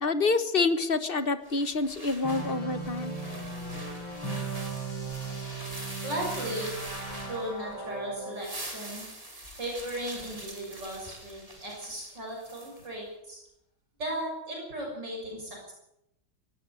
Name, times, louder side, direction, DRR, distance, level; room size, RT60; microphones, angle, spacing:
voice 1, 0.0-3.2, left 3 dB, 30° left, 11 dB, 1.3 m, -27 dB
sound 1, 1.4-7.8 8.2-12.9, right 1 dB, 15° right, 4.0 m, -44 dB
sound 2, 2.2-8.4, right 3 dB, 80° left, 6.8 m, -37 dB
voice 2, 6.0-6.8 7.2-9.1 9.6-13.4 14.0-15.7, right 1 dB, 60° right, -1 dB, 7.2 m, -36 dB
18.0 x 16.5 x 9.8 m, 0.84 s
omnidirectional pair, 2.2 m